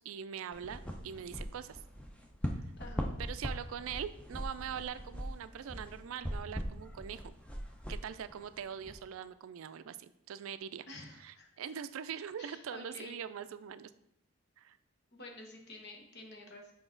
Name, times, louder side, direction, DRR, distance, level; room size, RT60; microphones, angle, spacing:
voice 1, 0.0-1.8 3.2-7.3 7.9-10.9 11.2-13.9 14.6-14.8, right 8 dB, 65° right, 13 dB, 0.3 m, -42 dB
sound 1, 0.5-9.0, equal, 5° left, 0.5 m, -41 dB
voice 2, 2.8-3.1 10.9-11.5 12.4-13.2 15.1-16.7, left 2 dB, 50° left, 2 dB, 1.1 m, -49 dB
6.0 x 4.9 x 3.8 m, 0.78 s
head